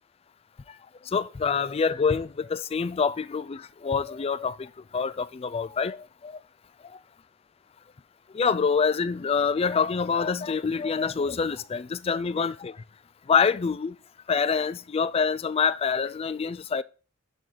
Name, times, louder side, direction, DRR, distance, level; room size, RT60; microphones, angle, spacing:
voice 1, 1.1-4.7 4.9-6.3 8.3-12.7 13.3-13.9 14.3-16.8, left 5 dB, 30° left, 0.3 m, -26 dB
11.0 x 3.9 x 4.6 m
head